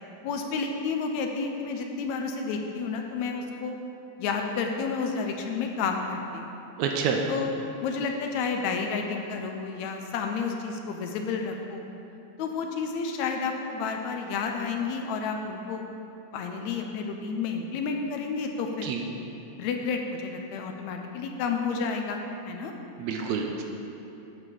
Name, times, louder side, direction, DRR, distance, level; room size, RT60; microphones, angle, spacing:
voice 1, 0.2-3.8 4.2-6.5 7.3-11.8 12.4-15.9 16.3-19.0 19.6-22.2 22.5-22.7, left 5 dB, 75° left, 3 dB, 1.8 m, -31 dB
voice 2, 6.8-7.2 18.8-19.0 23.0-23.6, right 6 dB, 75° right, 2 dB, 1.9 m, -28 dB
8.1 x 5.7 x 6.8 m, 2.9 s
omnidirectional pair, 3.4 m